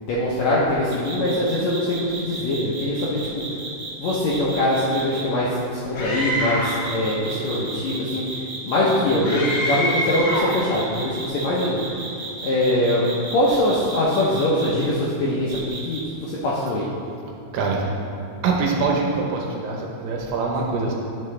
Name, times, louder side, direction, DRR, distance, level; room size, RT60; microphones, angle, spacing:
voice 1, 0.0-3.4 4.0-11.8 12.4-16.9, left 1 dB, 75° left, -6 dB, 1.6 m, -23 dB
sound 1, 0.9-5.2 6.6-14.9 15.5-16.0, right 3 dB, 60° right, 1.8 m, -34 dB
Screaming, 5.9-6.8 9.2-10.6, equal, 60° left, 2.6 m, -25 dB
voice 2, 17.5-17.9 18.4-20.9, right 4 dB, 75° right, -1 dB, 2.6 m, -24 dB
11.0 x 5.6 x 3.2 m, 2.5 s
omnidirectional pair, 4.1 m